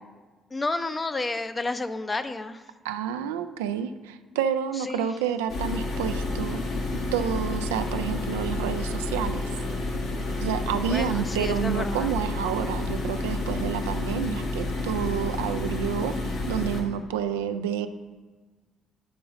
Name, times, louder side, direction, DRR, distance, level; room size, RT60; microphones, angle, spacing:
voice 1, 0.5-2.6 4.9-5.1 10.9-12.1, left 3 dB, 25° left, 10 dB, 0.5 m, -30 dB
voice 2, 2.8-6.6 7.1-9.5 10.4-17.9, right 8 dB, 80° right, 10 dB, 0.3 m, -29 dB
sound 1, 5.5-16.8, left 2 dB, 65° left, 1.3 m, -30 dB
11.0 x 3.9 x 4.9 m, 1.3 s
figure-of-eight pair, 45°, 0 cm